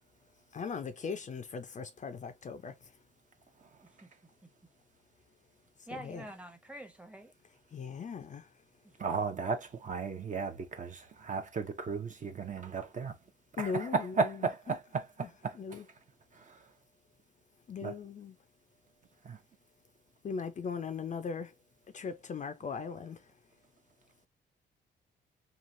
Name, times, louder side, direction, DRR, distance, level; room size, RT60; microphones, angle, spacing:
voice 1, 0.5-3.0 5.8-6.3 7.7-8.5 13.6-14.8 15.2-15.3 15.5-15.9 17.7-18.4 20.2-21.5 21.9-23.4, left 5 dB, 40° left, 0.5 m, -39 dB
voice 2, 5.9-7.3, right 1 dB, 5° right, 0.8 m, -46 dB
voice 3, 9.0-13.1 13.6-15.8 16.3-16.6 17.8-17.9 19.2-19.4, right 4 dB, 40° right, 0.8 m, -35 dB
3.1 x 2.4 x 2.5 m
cardioid pair, 90°, 20 cm